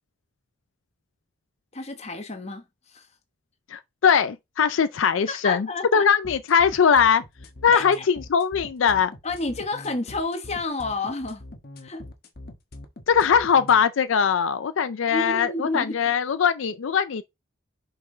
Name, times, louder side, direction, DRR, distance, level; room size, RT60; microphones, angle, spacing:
voice 1, 1.7-3.1 5.3-6.1 7.7-8.0 9.2-11.4 11.8-12.1 15.1-16.1, left 2 dB, 30° left, 1.2 m, -30 dB
voice 2, 3.7-5.7 5.9-7.2 7.6-9.1 13.1-17.2, left 7 dB, 75° left, 0.4 m, -21 dB
sound 1, 6.2-13.8, left 1 dB, 50° left, 1.4 m, -42 dB
6.0 x 5.5 x 3.8 m
head